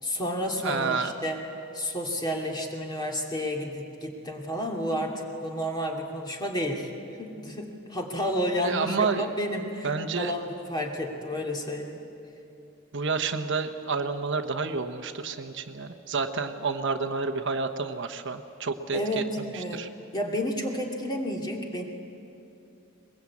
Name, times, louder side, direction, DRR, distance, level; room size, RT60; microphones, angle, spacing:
voice 1, 0.0-1.4 1.7-6.9 7.2-9.9 10.2-12.0 18.9-19.9 20.1-21.8, equal, 20° left, 1 dB, 2.6 m, -31 dB
voice 2, 0.6-1.1 8.6-9.3 9.8-10.3 12.9-19.9, right 4 dB, 60° right, 8 dB, 1.1 m, -29 dB
22.0 x 21.5 x 8.5 m, 2.7 s
head